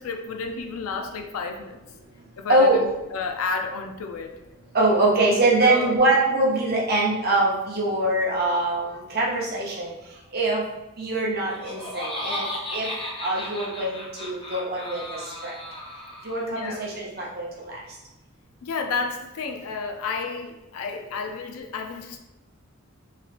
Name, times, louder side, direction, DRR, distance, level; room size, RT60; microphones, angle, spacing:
voice 1, 0.0-1.8 2.4-4.3 5.6-5.9 16.6-16.9 18.6-22.2, left 4 dB, 85° left, 4 dB, 0.4 m, -31 dB
voice 2, 2.5-2.8 4.7-9.9 10.3-10.6 11.0-12.4 12.7-12.9 13.2-15.5 16.2-17.8, right 2 dB, 45° right, -3 dB, 0.7 m, -23 dB
Laughter, 11.3-16.5, left 1 dB, 25° left, 0.4 m, -35 dB
3.3 x 2.8 x 2.5 m, 0.96 s
head